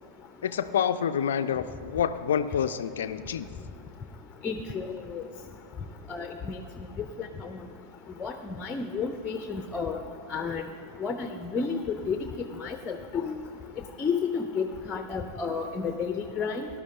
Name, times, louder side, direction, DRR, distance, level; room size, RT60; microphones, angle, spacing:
voice 1, 0.4-3.5, left 8 dB, 60° left, 11 dB, 0.3 m, -28 dB
voice 2, 4.4-5.2 6.1-6.6 7.2-7.6 8.2-10.0 10.3-10.6 11.0-12.2 12.6-13.3 14.0-16.7, left 5 dB, 20° left, 7 dB, 0.6 m, -31 dB
18.5 x 12.0 x 2.8 m, 2.4 s
figure-of-eight pair, 90°, 0 cm